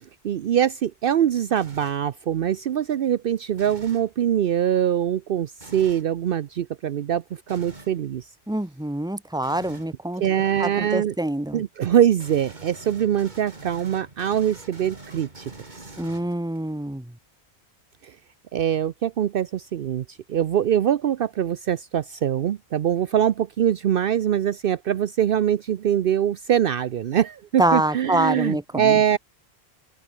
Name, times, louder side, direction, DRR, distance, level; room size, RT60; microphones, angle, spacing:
voice 1, 0.2-5.5 5.7-7.2 7.5-8.2 10.2-11.1 11.5-15.4 18.5-20.0 20.3-29.2, right 10 dB, 65° right, 0.8 m, -23 dB
sound 1, 1.6-2.1 3.5-4.1 5.6-6.1 7.5-8.0 9.4-9.9 12.2-16.6, right 2 dB, 45° right, 3.0 m, -44 dB
voice 2, 8.5-10.2 10.6-11.6 16.0-17.1 27.6-29.0, right 1 dB, 5° right, 1.4 m, -25 dB
omnidirectional pair, 1.1 m